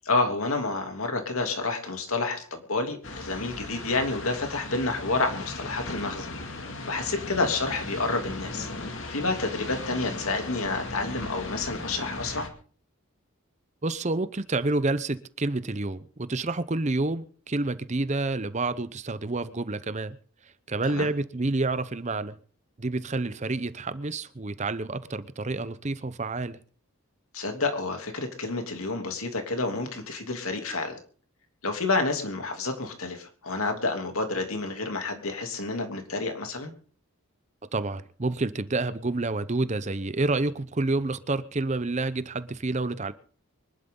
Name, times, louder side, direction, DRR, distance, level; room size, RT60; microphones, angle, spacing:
voice 1, 0.0-6.3 6.9-8.7 9.1-12.5 20.8-21.1 27.3-31.0 31.6-36.7, left 3 dB, 75° left, 4 dB, 2.9 m, -29 dB
sound 1, 3.0-12.5, left 2 dB, 60° left, 2.3 m, -37 dB
voice 2, 13.8-20.2 20.7-22.4 22.8-26.6 37.7-43.1, right 2 dB, 30° right, 14 dB, 0.7 m, -29 dB
24.5 x 11.5 x 3.9 m, 0.43 s
head